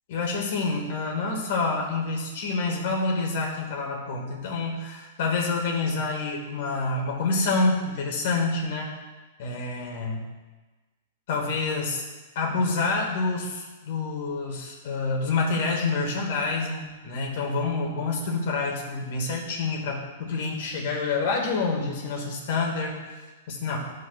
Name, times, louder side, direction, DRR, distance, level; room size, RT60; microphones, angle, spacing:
voice 1, 0.1-8.9 9.4-10.3 11.3-12.0 12.4-23.0 23.5-23.8, left 3 dB, 60° left, 0 dB, 2.0 m, -27 dB
13.0 x 5.4 x 2.5 m, 1.2 s
hypercardioid pair, 145°, 0 cm